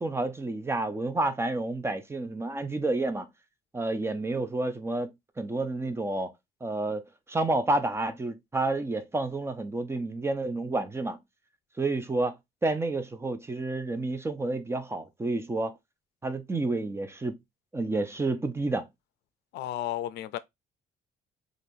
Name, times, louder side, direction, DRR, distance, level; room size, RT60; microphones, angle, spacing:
voice 1, 0.0-3.3 3.7-5.1 5.4-6.3 6.6-11.2 11.8-12.3 12.6-15.8 16.2-17.4 17.7-18.9, right 2 dB, 15° right, 0.5 m, -30 dB
voice 2, 19.5-20.4, left 13 dB, 75° left, 0.4 m, -33 dB
3.4 x 2.5 x 2.6 m
cardioid pair, 110°, 17 cm